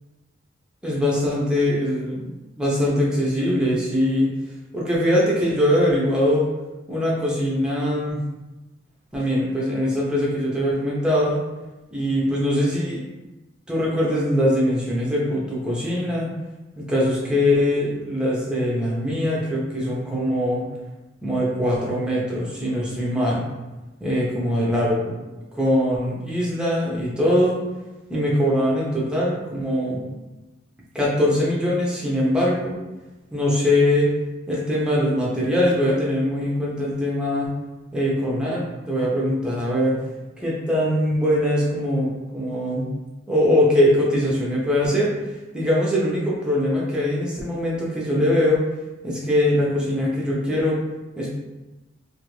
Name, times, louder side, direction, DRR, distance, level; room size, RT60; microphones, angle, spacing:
voice 1, 0.8-4.3 4.7-6.5 6.9-8.2 9.1-11.4 11.9-13.0 13.7-16.3 16.8-20.6 21.2-23.5 24.0-25.2 25.5-27.6 28.1-30.0 30.9-32.8 33.3-34.1 34.5-37.5 37.9-40.0 40.4-42.9 43.3-45.1 45.5-48.6 49.0-50.8 51.2-51.3, left 1 dB, 5° right, -5 dB, 0.6 m, -22 dB
2.5 x 2.5 x 3.1 m, 1.1 s
head